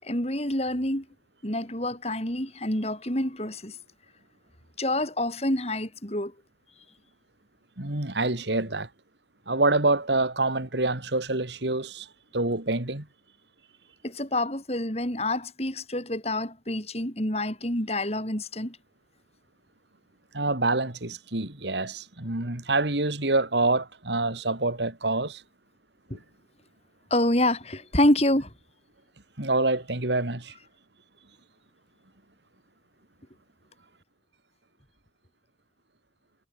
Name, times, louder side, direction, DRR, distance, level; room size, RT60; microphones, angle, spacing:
voice 1, 0.0-1.0 1.4-3.8 4.8-6.3 14.0-18.8 26.1-26.2 27.1-28.5, left 1 dB, 35° left, 6.8 m, -27 dB
voice 2, 7.8-8.9 9.5-12.1 12.3-13.1 20.3-25.4 26.1-26.2 29.4-30.5, right 2 dB, 70° right, 2.8 m, -26 dB
head